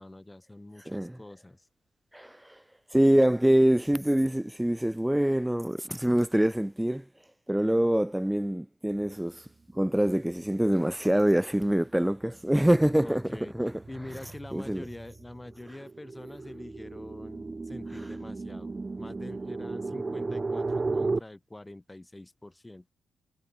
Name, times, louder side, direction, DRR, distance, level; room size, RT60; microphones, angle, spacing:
voice 1, 0.0-1.7 13.0-13.5 13.9-22.8, left 1 dB, 15° left, 6.7 m, -45 dB
voice 2, 0.9-1.2 2.1-2.6 2.9-7.0 7.5-9.5 9.7-13.7 14.5-14.8, right 1 dB, 5° right, 2.2 m, -25 dB
sound 1, 11.9-12.0 12.3-21.2, right 3 dB, 30° right, 1.7 m, -35 dB
cardioid pair, 70°, 0 cm